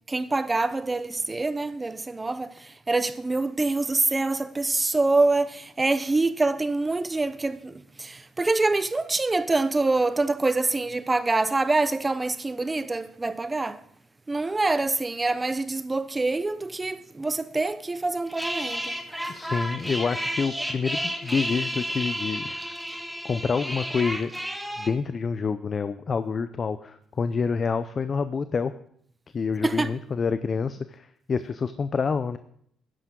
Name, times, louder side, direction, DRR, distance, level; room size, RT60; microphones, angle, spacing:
voice 1, 0.1-2.5 2.9-13.8 14.3-19.0 29.6-29.9, right 3 dB, 25° right, 0.8 m, -25 dB
sound 1, 18.3-24.9, equal, 5° right, 1.6 m, -32 dB
voice 2, 19.3-22.8 23.2-24.3 24.8-28.7 29.3-32.4, left 5 dB, 45° left, 0.6 m, -27 dB
12.5 x 10.0 x 3.8 m
supercardioid pair, 65°, 0 cm